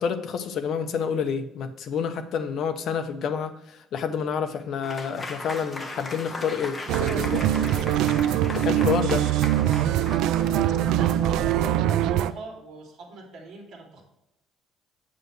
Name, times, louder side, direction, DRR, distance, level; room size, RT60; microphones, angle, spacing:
voice 1, 0.0-7.5 8.5-9.3, left 7 dB, 50° left, 7 dB, 0.8 m, -29 dB
Applause / Crowd, 4.8-11.6, left 2 dB, 15° left, 0.9 m, -38 dB
sound 1, 6.9-12.3, right 11 dB, 75° right, 0.4 m, -23 dB
voice 2, 10.4-14.0, right 3 dB, 55° right, 0 dB, 2.7 m, -41 dB
7.7 x 7.5 x 3.2 m, 0.88 s
cardioid pair, 160°, 0 cm